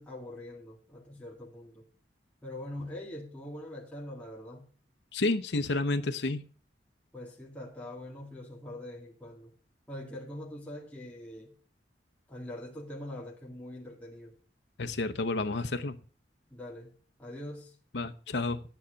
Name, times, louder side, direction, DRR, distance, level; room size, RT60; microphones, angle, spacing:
voice 1, 0.0-1.9 2.4-4.7 7.1-9.5 9.9-11.5 12.3-14.4 16.5-16.9 17.2-17.8, left 1 dB, 5° left, 2.0 m, -43 dB
voice 2, 5.1-6.4 14.8-16.0 17.9-18.6, left 2 dB, 80° left, 0.8 m, -30 dB
9.9 x 9.3 x 5.1 m
head